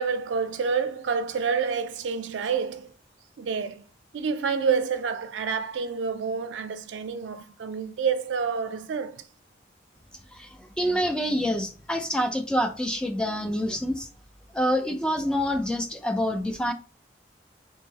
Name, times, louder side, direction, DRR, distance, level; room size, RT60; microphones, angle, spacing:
voice 1, 0.0-2.9 3.4-3.9 4.1-9.2, right 5 dB, 80° right, 0.4 m, -28 dB
voice 2, 10.8-14.1 14.5-16.7, equal, 5° left, 0.3 m, -26 dB
3.8 x 2.7 x 2.7 m
head